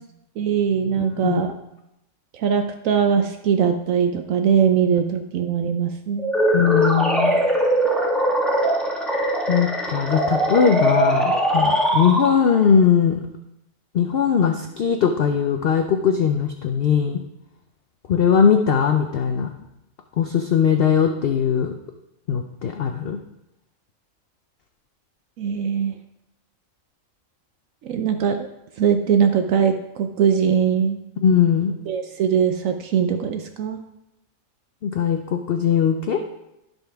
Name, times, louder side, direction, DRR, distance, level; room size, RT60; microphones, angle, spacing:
voice 1, 0.4-1.5 2.3-6.3 25.4-25.9 27.8-28.5 28.8-31.0 31.9-33.8, right 7 dB, 75° right, 6 dB, 1.0 m, -21 dB
voice 2, 1.0-1.4 6.5-7.4 9.5-13.2 13.9-17.2 18.1-19.5 20.2-21.7 22.3-23.2 31.2-31.7 34.8-36.2, left 7 dB, 55° left, 5 dB, 0.7 m, -20 dB
sound 1, 6.2-12.7, right 1 dB, ahead, 1.5 m, -21 dB
15.5 x 5.5 x 3.5 m, 0.89 s
omnidirectional pair, 1.4 m